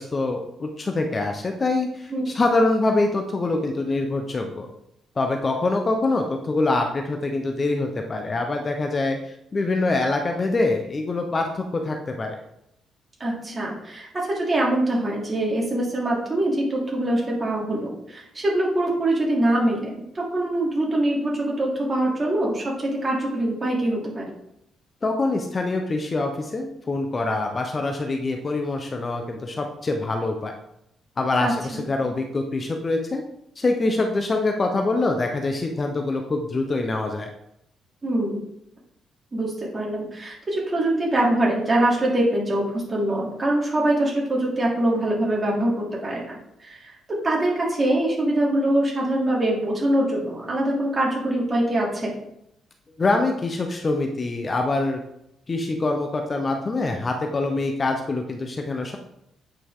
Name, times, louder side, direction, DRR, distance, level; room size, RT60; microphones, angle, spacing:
voice 1, 0.0-4.7 5.2-9.2 9.5-12.4 25.0-30.5 31.2-33.2 33.6-37.3 53.0-55.0 55.5-59.0, left 2 dB, 30° left, 4 dB, 0.9 m, -24 dB
voice 2, 13.2-24.3 31.4-31.8 38.0-38.4 39.3-45.7 46.0-46.9 47.2-52.2, right 1 dB, 30° right, -4 dB, 3.0 m, -23 dB
8.7 x 5.3 x 3.8 m, 0.79 s
cardioid pair, 90°, 0 cm